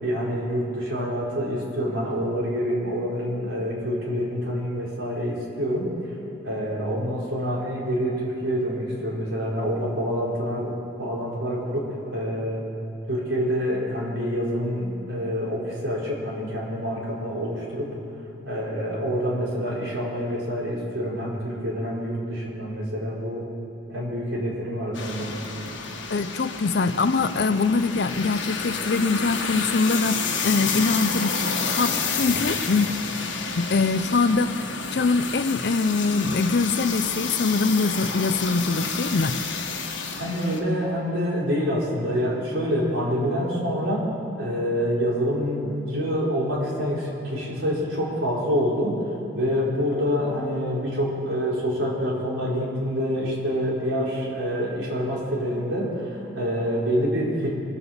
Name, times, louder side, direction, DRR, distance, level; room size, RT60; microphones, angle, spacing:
voice 1, 0.0-5.9 6.4-12.6 13.1-17.9 18.4-23.5 23.9-25.3 40.2-44.1 44.4-49.0 49.3-57.6, equal, 85° right, -5 dB, 4.4 m, -26 dB
sound 1, 24.9-40.6, left 5 dB, 75° left, 1.6 m, -30 dB
voice 2, 26.1-31.4 31.7-33.0 33.6-34.6 34.9-39.4, left 3 dB, 55° left, 12 dB, 0.5 m, -23 dB
24.0 x 8.1 x 7.2 m, 2.7 s
head